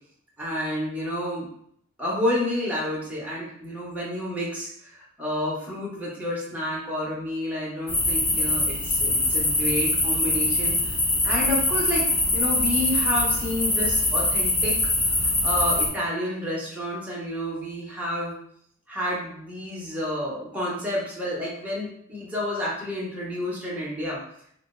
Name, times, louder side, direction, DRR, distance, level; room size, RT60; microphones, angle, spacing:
voice 1, 0.4-1.5 2.0-10.8 11.2-12.0 12.3-14.7 15.2-18.3 18.9-24.2, left 1 dB, 5° right, -6 dB, 0.9 m, -29 dB
sound 1, 7.9-15.9, left 2 dB, 10° left, 0.5 m, -23 dB
3.0 x 2.0 x 3.7 m, 0.68 s
head